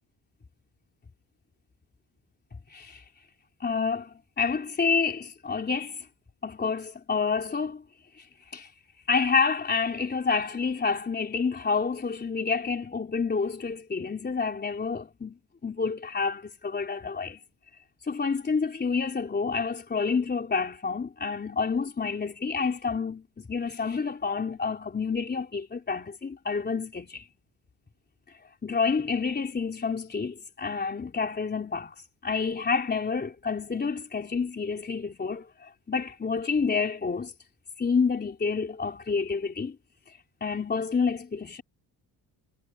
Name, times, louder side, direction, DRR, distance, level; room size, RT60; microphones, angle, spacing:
voice 1, 2.7-3.0 3.6-6.1 6.4-7.8 8.2-8.3 8.5-8.7 9.1-15.3 15.6-17.4 18.1-27.3 28.6-31.9 32.2-37.3 37.8-39.8 40.1-41.6, left 5 dB, 25° left, 3.5 m, -29 dB
cardioid pair, 130°, 41 cm